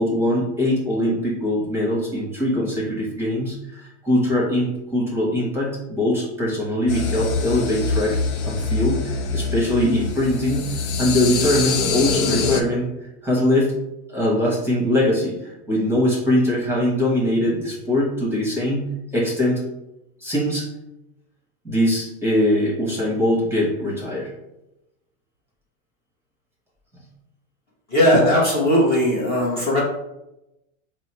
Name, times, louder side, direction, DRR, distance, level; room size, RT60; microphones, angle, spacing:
voice 1, 0.0-8.2 8.5-12.9 13.2-13.8 14.1-19.6 20.2-20.7 21.6-24.3, left 1 dB, 5° right, -4 dB, 1.0 m, -22 dB
sound 1, 6.9-12.6, left 4 dB, 90° left, 0.7 m, -24 dB
voice 2, 27.9-29.8, equal, 25° left, -6 dB, 0.8 m, -18 dB
3.8 x 2.0 x 4.2 m, 0.91 s
supercardioid pair, 140°, 42 cm